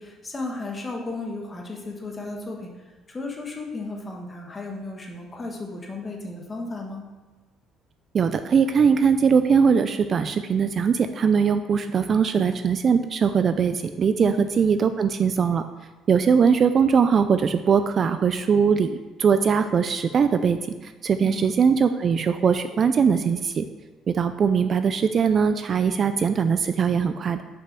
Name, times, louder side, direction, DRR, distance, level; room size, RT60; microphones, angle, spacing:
voice 1, 0.0-2.7 3.1-7.0 14.2-14.5 21.2-21.5, left 3 dB, 20° left, 1 dB, 1.4 m, -34 dB
voice 2, 8.1-15.6 16.1-23.7 24.1-27.4, right 6 dB, 35° right, 10 dB, 0.3 m, -21 dB
6.2 x 5.7 x 6.1 m, 1.2 s
cardioid pair, 140°, 0 cm